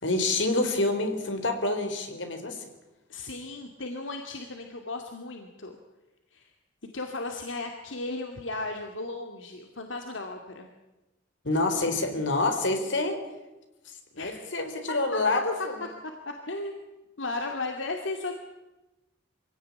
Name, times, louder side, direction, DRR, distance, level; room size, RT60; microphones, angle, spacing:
voice 1, 0.0-2.6 11.4-13.2 14.1-15.8, left 2 dB, 75° left, 6 dB, 3.9 m, -27 dB
voice 2, 3.1-5.7 6.3-6.5 6.9-10.7 14.2-14.4 14.9-15.4 15.8-16.8 17.2-18.3, left 2 dB, 90° left, 4 dB, 2.4 m, -35 dB
24.5 x 17.0 x 9.8 m, 1.0 s
head